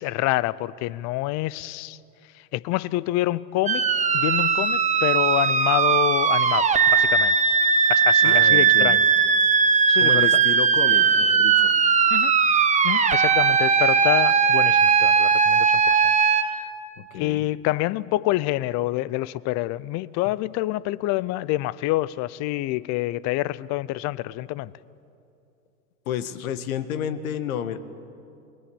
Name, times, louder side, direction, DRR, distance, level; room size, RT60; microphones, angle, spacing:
voice 1, 0.0-2.0 2.5-3.9 4.1-7.3 7.9-9.0 9.9-10.4 12.1-12.3 12.8-16.0 16.3-16.7 17.1-24.7, left 17 dB, 40° left, 21 dB, 0.6 m, -27 dB
sound 1, 3.7-16.4, right 6 dB, 15° right, 1.2 m, -19 dB
voice 2, 8.2-9.0 10.0-11.7 17.0-17.4 26.0-27.8, left 9 dB, 70° left, 12 dB, 1.6 m, -31 dB
28.0 x 21.5 x 7.2 m, 2.7 s
hypercardioid pair, 100°, 44 cm